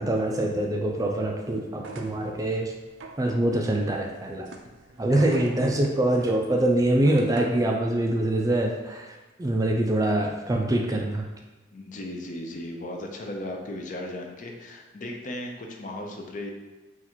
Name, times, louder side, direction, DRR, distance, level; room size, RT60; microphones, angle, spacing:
voice 1, 0.0-2.7 3.2-4.5 5.0-11.3, right 1 dB, 20° right, 2 dB, 0.3 m, -24 dB
Movie-cart, 1.8-7.7, right 3 dB, 75° right, 0.5 m, -44 dB
voice 2, 11.7-16.5, left 1 dB, 45° left, 2 dB, 0.5 m, -36 dB
4.1 x 2.4 x 4.3 m, 1.2 s
head